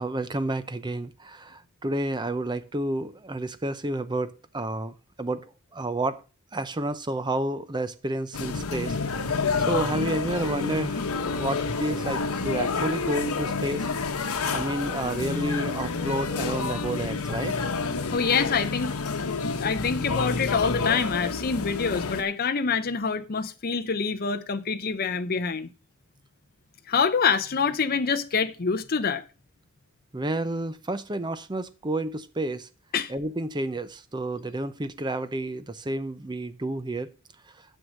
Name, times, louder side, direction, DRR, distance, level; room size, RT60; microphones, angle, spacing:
voice 1, 0.0-6.2 6.5-9.2 9.7-13.9 14.5-17.6 30.1-32.7 33.1-37.1, right 1 dB, 20° right, 0.6 m, -30 dB
sound 1, 8.3-22.2, left 4 dB, 85° left, 1.1 m, -29 dB
voice 2, 18.1-18.9 19.6-25.7 26.9-29.2 32.9-33.1, left 5 dB, 45° left, 0.6 m, -26 dB
9.6 x 6.4 x 6.3 m
head